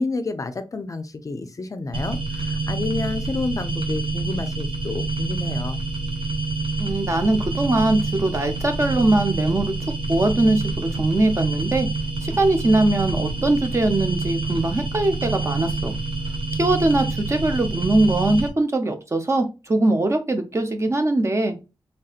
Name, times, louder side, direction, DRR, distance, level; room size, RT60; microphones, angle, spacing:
voice 1, 0.0-5.8, left 3 dB, 40° left, 9 dB, 0.4 m, -29 dB
sound 1, 1.9-18.5, right 3 dB, 90° right, 0.8 m, -27 dB
voice 2, 6.8-9.7 10.1-11.9 12.2-15.9 16.6-21.5, right 2 dB, 35° right, 6 dB, 0.6 m, -21 dB
3.4 x 2.7 x 2.4 m, 0.27 s
wide cardioid pair, 115°, 9 cm